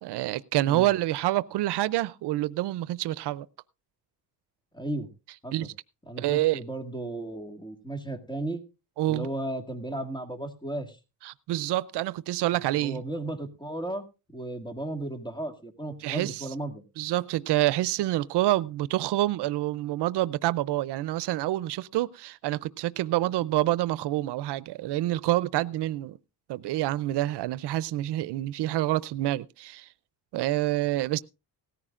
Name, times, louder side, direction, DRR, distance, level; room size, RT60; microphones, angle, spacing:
voice 1, 0.0-3.5 5.5-5.7 6.2-6.6 9.0-9.3 11.2-13.0 16.0-16.5 17.0-26.2 26.5-29.9 30.3-31.2, right 15 dB, 80° right, 0.6 m, -27 dB
voice 2, 4.7-5.1 5.4-5.7 6.1-8.6 9.1-11.0 12.8-14.0 14.3-16.8, right 1 dB, 10° left, 1.8 m, -35 dB
17.5 x 14.0 x 2.4 m
cardioid pair, 135°, 40 cm